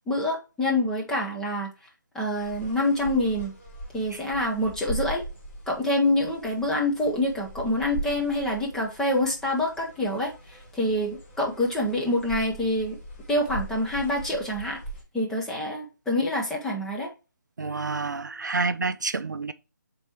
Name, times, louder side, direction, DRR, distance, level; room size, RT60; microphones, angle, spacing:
voice 1, 0.1-1.7 2.1-3.5 3.9-5.2 5.7-13.0 13.3-14.8 15.1-17.1, left 1 dB, 5° left, 0.9 m, -26 dB
sound 1, 2.4-15.0, right 1 dB, 40° left, 3.1 m, -40 dB
voice 2, 17.6-19.5, right 4 dB, 70° right, 0.5 m, -28 dB
5.9 x 3.9 x 4.3 m
figure-of-eight pair, 150°, 10 cm